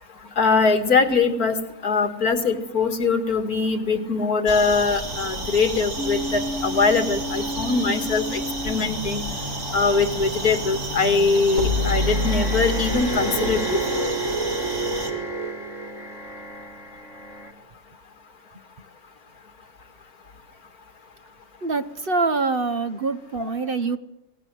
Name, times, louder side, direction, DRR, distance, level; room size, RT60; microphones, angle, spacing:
voice 1, 0.4-1.5 1.8-9.2 9.7-13.6 13.9-14.1 23.4-23.5, left 4 dB, 80° left, 8 dB, 2.6 m, -22 dB
sound 1, 4.5-15.1, right 2 dB, 75° right, 4.0 m, -32 dB
sound 2, 6.0-17.5, left 1 dB, 50° left, 4.2 m, -34 dB
sound 3, 11.6-16.3, right 1 dB, 60° right, 2.7 m, -27 dB
voice 2, 21.6-24.0, right 3 dB, 40° right, 10 dB, 1.1 m, -25 dB
26.5 x 19.0 x 7.8 m, 0.87 s
omnidirectional pair, 1.6 m